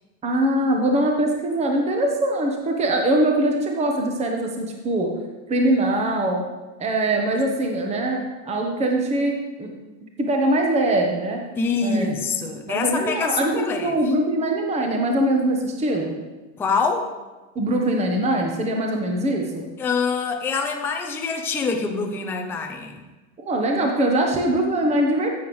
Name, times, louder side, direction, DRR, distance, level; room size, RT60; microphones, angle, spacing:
voice 1, 0.2-5.1 5.5-6.4 6.8-9.7 10.2-11.4 11.8-12.1 12.7-16.1 17.5-19.6 23.5-25.3, right 1 dB, 15° right, 2 dB, 0.9 m, -22 dB
voice 2, 11.6-13.9 16.6-17.1 19.8-23.0, left 5 dB, 5° left, 2 dB, 0.4 m, -25 dB
14.0 x 7.1 x 3.1 m, 1.2 s
supercardioid pair, 140°, 45 cm